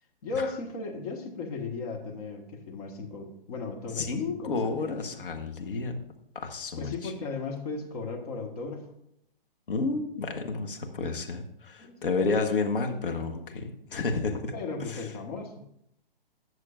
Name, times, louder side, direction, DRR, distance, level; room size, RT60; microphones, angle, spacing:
voice 1, 0.2-5.2 6.8-8.9 11.8-12.3 14.5-15.5, left 4 dB, 40° left, 3 dB, 1.4 m, -36 dB
voice 2, 4.0-6.0 6.3-7.1 9.7-14.5 14.9-15.0, left 4 dB, 65° left, 4 dB, 1.4 m, -31 dB
17.5 x 6.5 x 2.5 m, 0.75 s
figure-of-eight pair, 130°, 29 cm